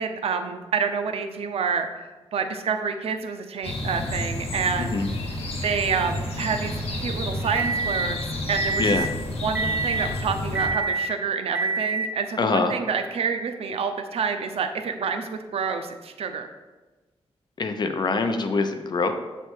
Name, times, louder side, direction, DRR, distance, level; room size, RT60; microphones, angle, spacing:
voice 1, 0.0-5.0 5.6-9.0 9.4-16.5, right 6 dB, 70° right, 6 dB, 0.5 m, -28 dB
sound 1, 3.6-10.7, left 2 dB, 65° left, 1.2 m, -31 dB
sound 2, 6.0-8.1 8.6-9.1 9.6-10.1 10.6-11.1 11.6-12.1, right 3 dB, 15° right, 0.4 m, -28 dB
voice 2, 12.4-12.7 17.6-19.1, left 4 dB, 45° left, 7 dB, 0.5 m, -24 dB
7.3 x 3.3 x 4.5 m, 1.2 s
wide cardioid pair, 120°, 10 cm